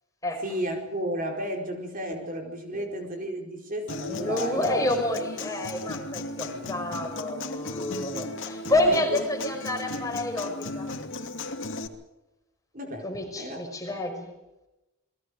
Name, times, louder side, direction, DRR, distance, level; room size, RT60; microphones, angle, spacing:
voice 1, 0.4-4.7 6.4-6.7 8.7-9.2 12.7-13.1 13.3-13.6, right 1 dB, 40° right, 3 dB, 4.5 m, -33 dB
Human voice / Acoustic guitar, 3.9-11.9, left 2 dB, 55° left, 2.7 m, -36 dB
voice 2, 4.1-10.9 13.0-14.3, left 1 dB, 15° left, 3 dB, 5.6 m, -29 dB
30.0 x 22.0 x 5.1 m, 0.97 s
head